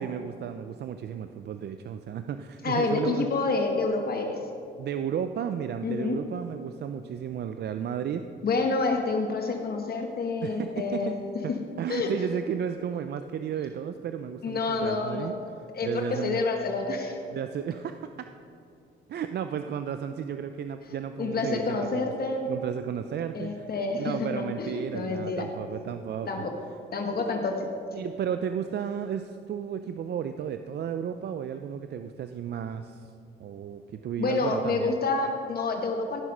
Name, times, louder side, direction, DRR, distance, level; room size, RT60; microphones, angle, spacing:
voice 1, 0.0-3.3 4.8-8.3 10.4-11.1 11.4-11.5 11.8-15.4 15.8-16.4 17.3-18.3 19.1-22.1 22.5-23.7 24.0-26.4 27.9-33.1 33.4-35.0, right 8 dB, 55° right, 9 dB, 0.5 m, -33 dB
voice 2, 2.6-4.4 5.8-6.2 8.4-11.1 11.5-11.6 11.9-12.1 14.4-15.3 15.7-17.2 21.2-22.5 23.3-25.5 26.3-26.5 26.9-27.7 34.2-36.2, left 3 dB, 50° left, 3 dB, 1.3 m, -28 dB
16.0 x 6.3 x 5.4 m, 2.5 s
cardioid pair, 90°, 20 cm